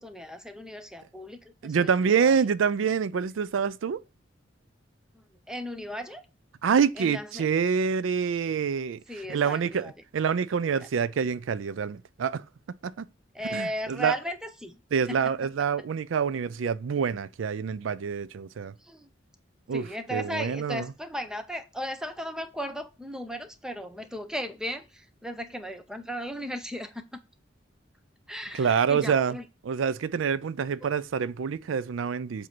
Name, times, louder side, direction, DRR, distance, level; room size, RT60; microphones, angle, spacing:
voice 1, 0.0-2.4 5.1-6.2 7.0-7.5 9.1-9.9 10.8-10.9 13.3-14.8 15.1-15.5 18.8-19.1 19.7-27.2 28.3-29.5, equal, 5° right, 0.7 m, -36 dB
voice 2, 1.6-4.0 6.6-9.0 9.3-12.4 12.8-13.1 13.5-14.1 14.9-18.7 19.7-19.8 20.1-20.9 28.5-29.4 29.6-32.5, right 6 dB, 85° right, 0.4 m, -26 dB
7.5 x 2.7 x 5.9 m
head